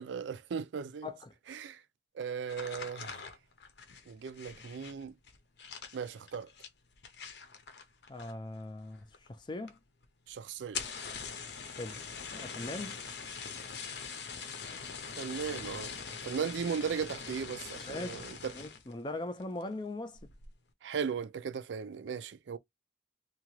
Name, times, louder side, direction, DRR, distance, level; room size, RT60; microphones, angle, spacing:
voice 1, 0.0-1.1 1.5-1.8 2.2-3.2 4.1-5.1 5.9-6.5 10.3-10.8 15.2-15.9 16.2-18.5 20.8-22.6, right 6 dB, 75° right, 0.4 m, -37 dB
voice 2, 1.0-1.3 8.1-9.8 11.8-12.1 12.3-13.0 17.9-18.2 18.5-20.2, left 2 dB, 25° left, 0.4 m, -40 dB
sound 1, 2.4-8.6 8.9-9.4 9.7-9.8 10.0-10.1 10.6-18.9 19.4-19.7 20.1-20.5, left 6 dB, 65° left, 0.6 m, -43 dB
2.8 x 2.4 x 3.0 m
head